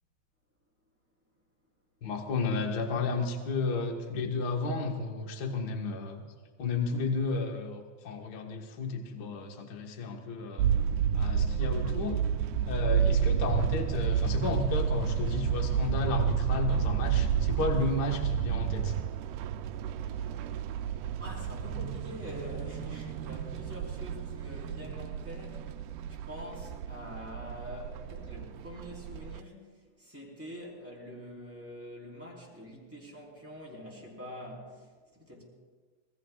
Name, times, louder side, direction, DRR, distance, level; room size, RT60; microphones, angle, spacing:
voice 1, 2.0-6.2 6.6-10.7 11.1-12.2 12.6-18.9, left 3 dB, 40° left, 1 dB, 1.7 m, -32 dB
sound 1, 10.6-29.4, right 8 dB, 85° right, 2.1 m, -31 dB
voice 2, 21.2-25.7 26.1-29.7 30.0-34.7 35.1-35.4, equal, 5° right, -4 dB, 4.1 m, -45 dB
27.0 x 19.5 x 2.4 m, 1.4 s
omnidirectional pair, 3.5 m